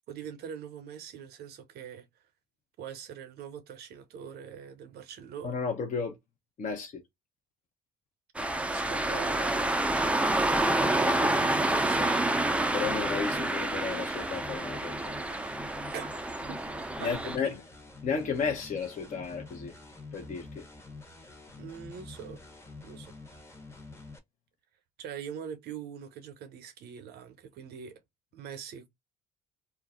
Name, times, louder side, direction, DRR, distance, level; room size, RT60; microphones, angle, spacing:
voice 1, 0.1-2.1 2.8-5.5 8.6-9.8 10.9-12.2 15.9-16.1 16.5-16.6 17.0-17.6 21.6-22.4 22.8-23.1 25.0-28.0 28.3-28.9, right 8 dB, 65° right, 0.7 m, -43 dB
voice 2, 5.4-6.2 6.6-7.0 12.7-15.4 17.0-17.6 18.0-19.7 20.1-20.6, left 5 dB, 45° left, 0.7 m, -33 dB
sound 1, 8.4-17.4, right 1 dB, 5° right, 0.4 m, -28 dB
sound 2, 9.9-24.2, left 3 dB, 15° left, 0.8 m, -47 dB
2.4 x 2.0 x 3.5 m
supercardioid pair, 85°, 18 cm